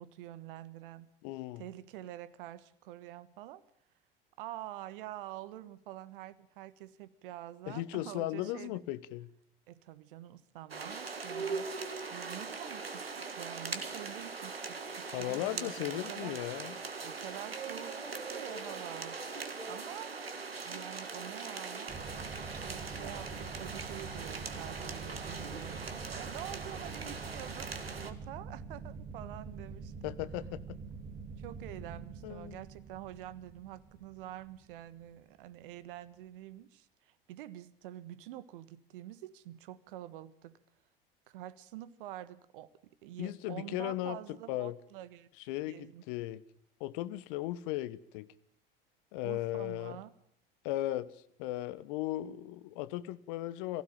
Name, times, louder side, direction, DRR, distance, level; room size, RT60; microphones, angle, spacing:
voice 1, 0.0-1.1 1.6-3.6 4.4-8.8 9.7-11.7 12.1-16.4 17.0-19.2 19.7-20.2 20.5-22.0 22.6-29.9 31.4-40.6 41.3-45.3 45.6-46.0 49.2-50.1, right 13 dB, 65° right, 17 dB, 1.4 m, -47 dB
voice 2, 1.2-1.6 7.7-9.3 15.1-16.8 30.0-30.6 32.2-32.6 43.2-44.2 44.5-44.7 45.5-46.4 46.8-48.3 49.1-50.0 50.6-51.1 51.4-53.8, left 15 dB, 60° left, 17 dB, 1.3 m, -36 dB
sound 1, 10.7-28.1, right 4 dB, 90° right, 1.8 m, -41 dB
sound 2, 21.9-35.1, right 4 dB, 30° right, 2.1 m, -46 dB
23.0 x 16.0 x 9.0 m, 0.68 s
figure-of-eight pair, 75°, 29 cm